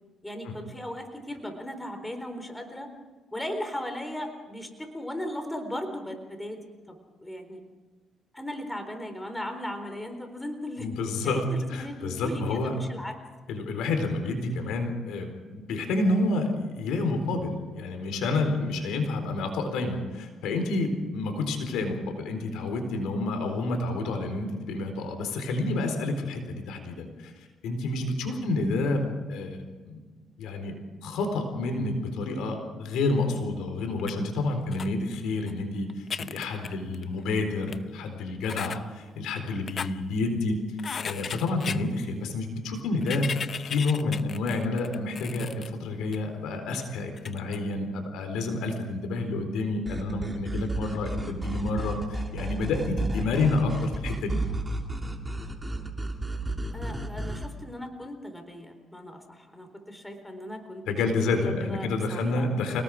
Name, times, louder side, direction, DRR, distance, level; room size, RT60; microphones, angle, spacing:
voice 1, 0.2-2.9 3.3-6.6 6.9-7.6 8.3-10.9 11.2-13.1 28.3-28.5 56.7-60.8 61.3-62.5, left 1 dB, 10° left, 6 dB, 4.0 m, -37 dB
voice 2, 10.8-12.7 13.5-27.3 27.6-30.0 30.4-30.7 31.0-40.6 41.0-43.4 43.6-54.4 60.9-62.8, left 2 dB, 90° left, 5 dB, 4.1 m, -29 dB
sound 1, 34.0-34.1 34.7-34.9 35.5-35.6 35.9-37.2 37.7-37.8 38.4-38.8 39.5-39.9 40.8-41.8 43.0-45.7 46.1-46.2 47.2-47.6, left 6 dB, 50° left, 0.8 m, -35 dB
sound 2, 49.9-57.5, right 1 dB, 15° right, 2.8 m, -32 dB
29.0 x 19.0 x 4.9 m, 1.3 s
cardioid pair, 90°, 0 cm